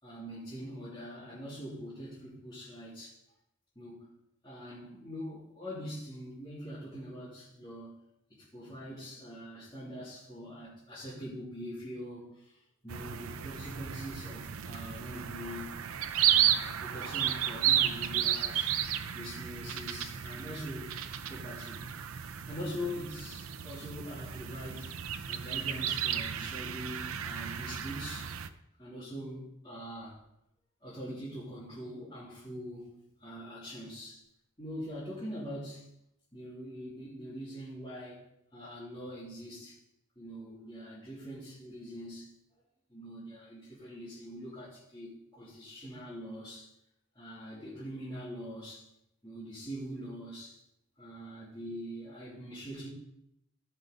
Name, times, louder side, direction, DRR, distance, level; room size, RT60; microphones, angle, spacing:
voice 1, 0.0-3.2 3.7-4.1 4.4-8.0 8.4-15.8 16.2-18.8 19.1-21.0 21.3-21.8 22.5-25.0 25.3-28.3 28.8-30.2 30.8-34.2 34.6-35.9 36.3-39.8 40.2-42.3 42.9-46.7 47.1-48.9 49.2-50.6 51.0-52.9, equal, 20° left, -11 dB, 2.9 m, -43 dB
sound 1, 12.9-28.5, right 10 dB, 85° right, 0.6 m, -33 dB
15.0 x 5.3 x 5.1 m, 0.81 s
head